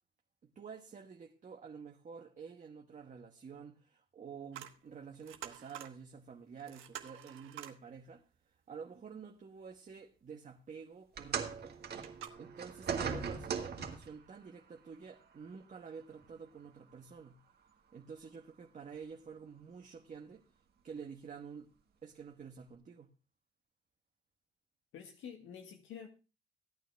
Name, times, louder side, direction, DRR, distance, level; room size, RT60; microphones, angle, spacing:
voice 1, 0.5-8.2 8.7-11.8 12.4-17.4 17.9-20.5 20.8-21.7 22.0-23.1, right 6 dB, 40° right, 1.2 m, -49 dB
sound 1, 4.5-4.8 5.1-6.0 6.3-6.4 6.6-7.8 11.5-11.6 12.0-12.3, right 11 dB, 90° right, 1.2 m, -48 dB
sound 2, 11.2-14.2 15.2-15.4 16.2-16.3, right 6 dB, 55° right, 1.7 m, -38 dB
voice 2, 24.9-26.1, left 7 dB, 80° left, 1.6 m, -48 dB
15.5 x 9.2 x 3.4 m
cardioid pair, 90°, 20 cm